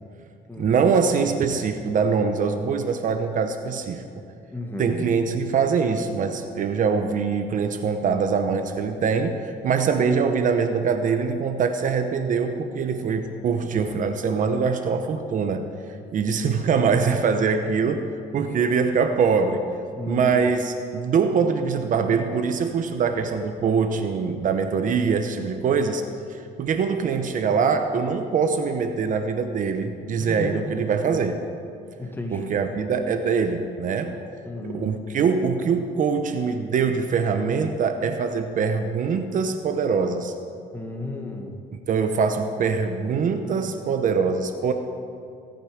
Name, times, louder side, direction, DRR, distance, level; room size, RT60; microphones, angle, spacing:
voice 1, 0.6-4.0 4.8-15.6 16.1-19.8 20.1-26.0 26.3-31.4 32.3-34.2 34.6-40.3 41.9-44.7, right 5 dB, 50° right, 7 dB, 0.9 m, -23 dB
voice 2, 4.5-5.1 10.0-10.1 20.0-20.3 30.2-30.6 32.0-32.6 34.4-34.9 40.7-41.5, left 1 dB, 15° left, 2 dB, 1.8 m, -33 dB
17.5 x 9.1 x 5.1 m, 2.4 s
cardioid pair, 110°, 17 cm